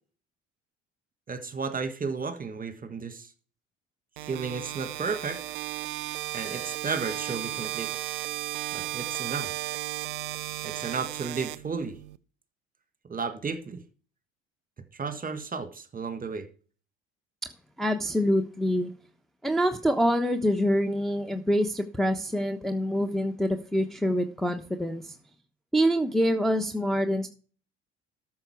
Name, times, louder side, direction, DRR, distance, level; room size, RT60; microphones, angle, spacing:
voice 1, 1.3-3.3 4.3-5.4 6.3-7.9 8.7-9.5 10.6-12.0 13.1-13.8 14.9-16.5, right 5 dB, 25° right, 11 dB, 1.7 m, -33 dB
sound 1, 4.2-12.2, right 18 dB, 70° right, 0.7 m, -35 dB
voice 2, 17.8-18.9 19.4-25.2 25.7-27.3, equal, ahead, 4 dB, 1.1 m, -26 dB
13.5 x 6.3 x 4.6 m, 0.38 s
figure-of-eight pair, 60°, 35 cm